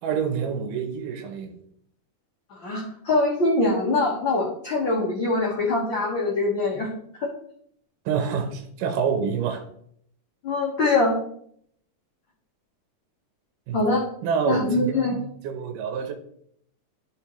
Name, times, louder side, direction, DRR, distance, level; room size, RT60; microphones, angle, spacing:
voice 1, 0.0-1.6 8.1-9.6 13.7-13.8 14.2-16.1, right 6 dB, 90° right, 2.5 m, -27 dB
voice 2, 2.5-6.9 7.2-7.3 10.4-11.2 13.7-14.0 14.5-15.2, left 2 dB, 50° left, 1.6 m, -23 dB
11.5 x 5.3 x 3.1 m
omnidirectional pair, 3.6 m